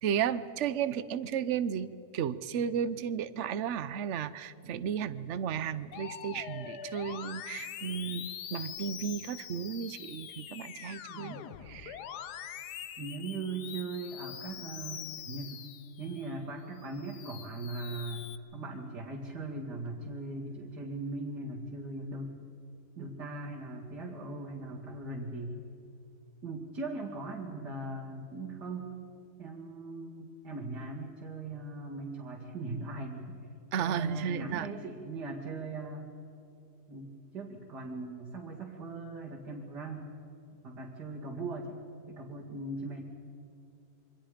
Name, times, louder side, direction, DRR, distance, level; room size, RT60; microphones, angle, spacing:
voice 1, 0.0-11.4 11.7-12.0 33.7-34.7, right 8 dB, 55° right, 14 dB, 1.0 m, -34 dB
Musical instrument, 5.9-16.3 16.8-18.4, left 9 dB, 80° left, 1.4 m, -44 dB
voice 2, 13.0-15.6 16.0-18.3 18.5-22.4 23.0-25.6 26.4-28.9 29.4-33.4 33.8-36.1 36.9-40.1 40.6-41.8 42.1-43.0, right 2 dB, 85° right, -4 dB, 3.0 m, -39 dB
28.0 x 24.5 x 5.1 m, 2.7 s
omnidirectional pair, 1.7 m